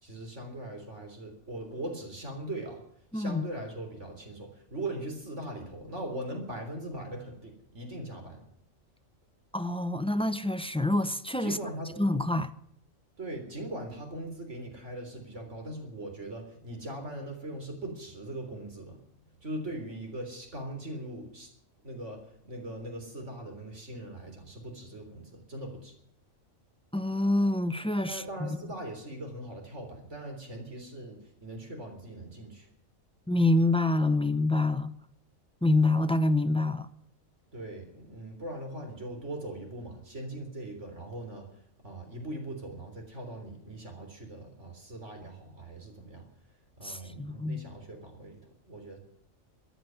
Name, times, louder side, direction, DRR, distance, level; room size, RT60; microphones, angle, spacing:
voice 1, 0.0-2.8 3.1-8.5 11.4-12.1 13.2-19.0 19.4-21.5 21.8-25.9 28.0-32.7 37.5-46.3 46.8-49.0, right 1 dB, 60° right, 4.0 m, -40 dB
voice 2, 3.1-3.4 9.5-11.6 12.0-12.5 26.9-28.5 33.3-34.9 35.6-36.9 46.8-47.6, left 2 dB, 5° left, 0.5 m, -26 dB
14.5 x 10.0 x 9.4 m
omnidirectional pair, 1.4 m